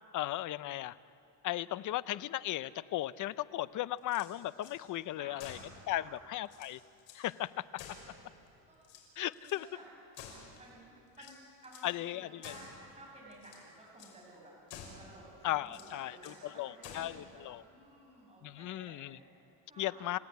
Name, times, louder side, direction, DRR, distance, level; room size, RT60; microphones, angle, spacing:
voice 1, 0.1-1.0 1.4-5.6 5.9-6.8 7.1-7.6 9.2-9.7 11.8-12.4 15.4-17.6 18.4-19.2 19.8-20.2, left 14 dB, 40° left, 17 dB, 0.6 m, -36 dB
sound 1, 4.0-4.8 5.4-5.8 6.2-6.3 6.5-7.3 7.8-8.5 8.8-9.6 10.1-10.7 11.2-11.9 12.4-12.8 13.3-13.7 14.0-14.2 14.7-15.1 15.7-16.4 16.8-17.2, left 6 dB, 65° left, 5.7 m, -51 dB
voice 2, 5.2-5.5 5.9-6.2 7.9-8.1 8.4-8.9 9.4-11.3 11.6-14.6 15.0-20.2, right 1 dB, 15° right, -3 dB, 6.7 m, -55 dB
30.0 x 16.5 x 9.3 m, 2.7 s
cardioid pair, 145°, 48 cm